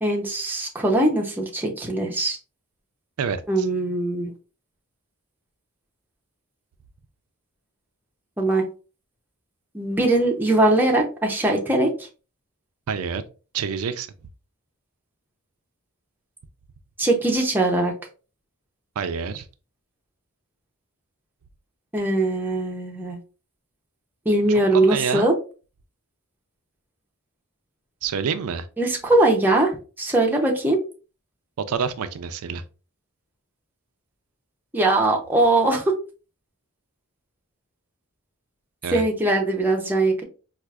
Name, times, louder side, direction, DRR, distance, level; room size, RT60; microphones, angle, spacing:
voice 1, 0.0-2.4 3.5-4.3 8.4-8.6 9.7-11.9 17.0-17.9 21.9-23.2 24.3-25.3 28.8-29.7 30.0-30.8 34.7-35.8 38.9-40.2, right 2 dB, 10° right, 0.6 m, -21 dB
voice 2, 3.2-3.7 12.9-13.2 13.5-14.1 19.0-19.4 24.7-25.3 28.0-28.7 31.7-32.6 38.8-39.0, right 6 dB, 75° right, 0.4 m, -27 dB
4.5 x 2.4 x 2.3 m
head